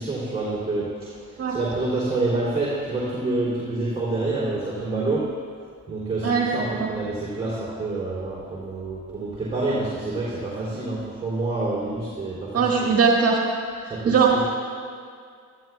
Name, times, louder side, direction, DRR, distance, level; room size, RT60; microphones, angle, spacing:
voice 1, 0.0-5.3 5.9-12.9 13.9-14.2, right 2 dB, 20° right, -9 dB, 3.3 m, -27 dB
voice 2, 6.2-6.9 12.5-13.4 14.0-14.4, right 5 dB, 55° right, -2 dB, 1.7 m, -20 dB
16.5 x 13.5 x 2.4 m, 2.2 s
cardioid pair, 90°, 30 cm